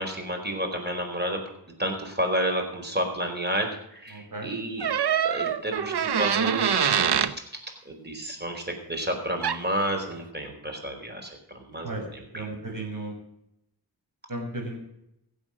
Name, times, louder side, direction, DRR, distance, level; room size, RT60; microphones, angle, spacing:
voice 1, 0.0-1.4 1.8-4.9 5.2-7.1 7.8-12.5, right 1 dB, 25° right, 4 dB, 4.6 m, -31 dB
voice 2, 4.1-4.5 11.8-12.0 12.3-13.1 14.3-14.8, right 2 dB, 45° right, 2 dB, 6.2 m, -34 dB
sound 1, 4.8-7.3 9.4-9.6, right 8 dB, 65° right, 0.9 m, -24 dB
16.0 x 8.2 x 7.6 m, 0.79 s
cardioid pair, 65°, 43 cm